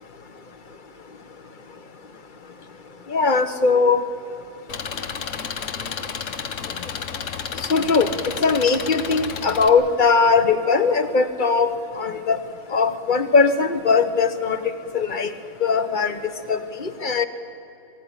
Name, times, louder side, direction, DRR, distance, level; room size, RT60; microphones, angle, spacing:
voice 1, 3.1-4.0 7.6-11.7 12.0-12.4 12.7-15.3 15.6-17.3, left 4 dB, 40° left, 10 dB, 1.0 m, -20 dB
Engine, 4.7-9.7, left 7 dB, 65° left, 1.3 m, -31 dB
22.0 x 16.0 x 9.9 m, 2.8 s
omnidirectional pair, 1.5 m